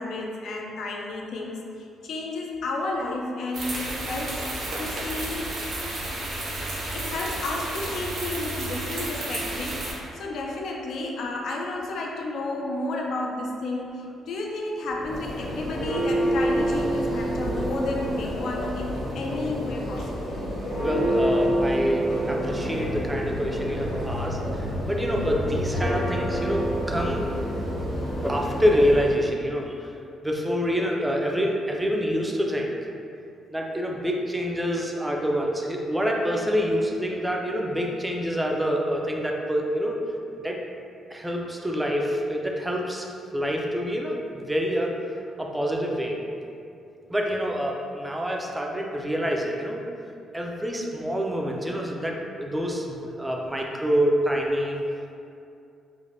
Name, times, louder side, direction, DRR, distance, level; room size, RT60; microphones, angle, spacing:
voice 1, 0.0-4.5 4.8-5.5 6.9-20.3, left 2 dB, 70° left, -1 dB, 0.3 m, -32 dB
sound 1, 3.5-9.9, right 2 dB, 55° right, 0.6 m, -32 dB
Church bell, 14.9-29.2, equal, 50° left, 0.9 m, -28 dB
voice 2, 20.8-27.2 28.2-29.9 30.2-32.9 33.5-40.0 40.4-40.6 41.1-43.1 43.3-45.0 45.4-46.2 47.1-49.8 50.3-54.8, equal, 10° right, -1 dB, 0.4 m, -26 dB
3.2 x 2.1 x 2.5 m, 2.5 s
cardioid pair, 90°, 0 cm